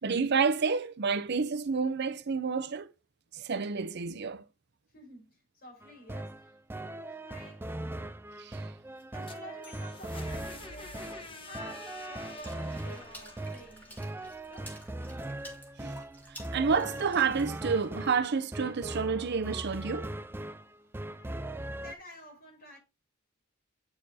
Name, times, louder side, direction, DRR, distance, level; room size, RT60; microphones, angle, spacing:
voice 1, 0.0-2.9 3.4-4.4 8.4-8.6 15.8-15.9 16.5-20.1, right 5 dB, 50° right, 0.6 m, -29 dB
voice 2, 4.9-8.1 9.1-14.0 14.5-14.9 21.1-22.8, equal, 45° left, 4.7 m, -51 dB
sound 1, 5.8-21.9, right 1 dB, 10° right, 0.3 m, -40 dB
sound 2, 9.0-14.9, left 2 dB, 25° left, 1.2 m, -48 dB
Water / Splash splatter, 12.4-18.2, equal, 10° left, 2.2 m, -52 dB
8.9 x 6.6 x 2.7 m
head